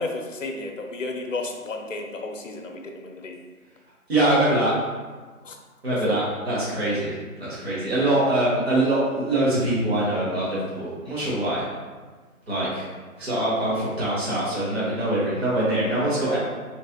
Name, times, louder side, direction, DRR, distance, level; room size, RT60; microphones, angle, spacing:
voice 1, 0.0-3.4 5.4-5.6 5.9-6.2 7.6-7.8, left 3 dB, 60° left, 3 dB, 0.6 m, -32 dB
voice 2, 4.1-4.7 5.8-11.6 12.5-12.9 13.2-16.4, right 1 dB, 45° right, -8 dB, 1.2 m, -23 dB
3.2 x 3.2 x 2.7 m, 1.4 s
figure-of-eight pair, 160°, 45 cm